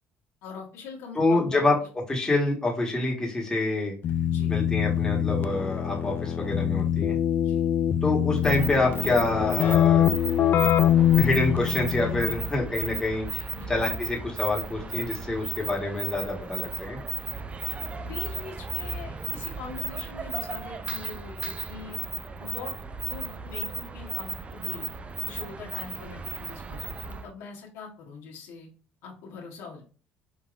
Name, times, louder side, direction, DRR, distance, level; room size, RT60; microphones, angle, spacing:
voice 1, 0.4-1.7 4.3-4.5 7.4-7.6 13.3-13.8 18.0-22.7 23.0-24.9 25.2-28.7 29.0-29.8, left 5 dB, 75° left, -2 dB, 1.4 m, -43 dB
voice 2, 1.1-1.7 2.1-3.9 4.5-7.2 8.0-10.1 11.2-13.3 13.7-17.0, left 2 dB, 15° left, -2 dB, 1.5 m, -26 dB
Keyboard (musical), 4.0-12.5, left 10 dB, 45° left, 0.3 m, -24 dB
sound 1, 8.4-27.3, right 4 dB, 25° right, 0.4 m, -35 dB
5.1 x 2.8 x 2.5 m, 0.38 s
supercardioid pair, 95°, 5 cm